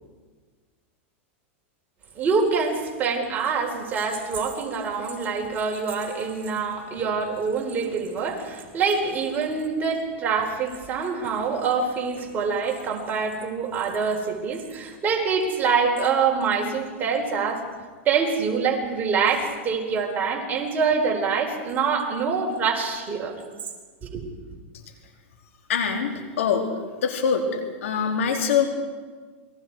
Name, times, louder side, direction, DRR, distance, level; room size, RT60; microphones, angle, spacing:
voice 1, 2.2-17.6 18.0-23.4 24.1-24.3, right 5 dB, 25° right, 0 dB, 4.2 m, -25 dB
voice 2, 25.7-26.1 26.4-26.7 27.0-27.4 27.8-28.6, left 7 dB, 80° left, 3 dB, 3.8 m, -23 dB
28.0 x 22.0 x 4.8 m, 1.5 s
supercardioid pair, 135°, 7 cm